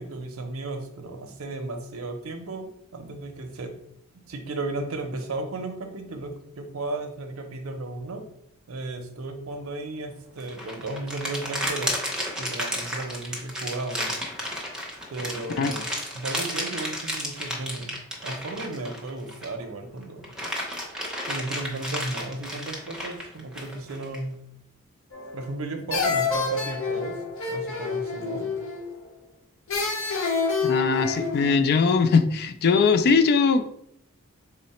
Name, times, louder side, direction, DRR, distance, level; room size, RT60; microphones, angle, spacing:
voice 1, 0.0-3.8 4.3-8.2 8.7-11.9 12.4-14.1 15.1-15.9 16.1-17.9 18.2-20.3 21.3-24.4 25.3-27.2 27.5-28.5, right 2 dB, 90° right, 5 dB, 0.6 m, -34 dB
sound 1, 10.4-19.6 20.0-24.2, equal, 5° right, 0.6 m, -32 dB
sound 2, 25.1-25.6 25.9-29.0 29.7-31.5, left 4 dB, 65° left, 0.7 m, -27 dB
voice 2, 30.6-33.7, left 5 dB, 50° left, 9 dB, 0.3 m, -21 dB
3.8 x 2.0 x 4.1 m, 0.73 s
head